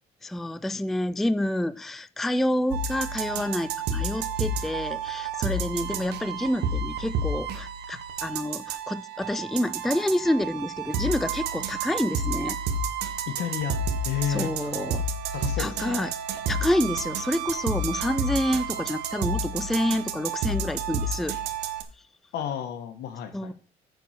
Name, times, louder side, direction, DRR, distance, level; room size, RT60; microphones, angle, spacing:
voice 1, 0.2-12.6 14.3-15.0 15.6-16.1 16.5-21.4 23.3-23.5, left 1 dB, ahead, 0.3 m, -28 dB
sound 1, 2.7-21.8, right 4 dB, 85° right, 1.2 m, -30 dB
voice 2, 13.3-13.8 14.0-15.0 15.3-16.0 22.3-23.5, left 10 dB, 75° left, 1.3 m, -32 dB
9.1 x 4.7 x 6.4 m
cardioid pair, 110°, 17 cm